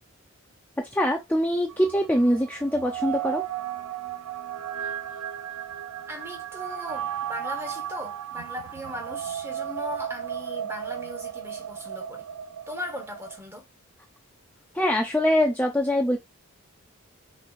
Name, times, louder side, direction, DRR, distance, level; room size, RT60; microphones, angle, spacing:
voice 1, 0.8-3.4 14.7-16.2, equal, 10° left, 0.5 m, -23 dB
sound 1, 1.7-13.4, right 10 dB, 90° right, 0.4 m, -35 dB
voice 2, 6.1-12.3 12.7-13.6, left 1 dB, 10° right, 1.1 m, -38 dB
5.8 x 3.1 x 2.4 m
head